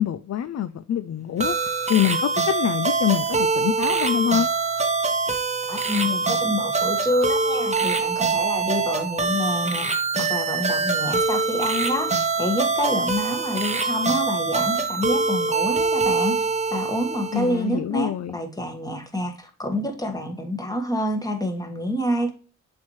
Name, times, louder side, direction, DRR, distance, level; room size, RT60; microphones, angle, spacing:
voice 1, 0.0-1.6 1.9-4.5 17.3-18.4, left 10 dB, 55° left, 0.5 m, -25 dB
sound 1, 1.4-17.6, right 4 dB, 20° right, 1.0 m, -24 dB
voice 2, 5.7-9.9 10.2-16.4 16.7-22.3, equal, 10° left, 1.5 m, -27 dB
7.1 x 4.5 x 3.1 m
cardioid pair, 80°, 33 cm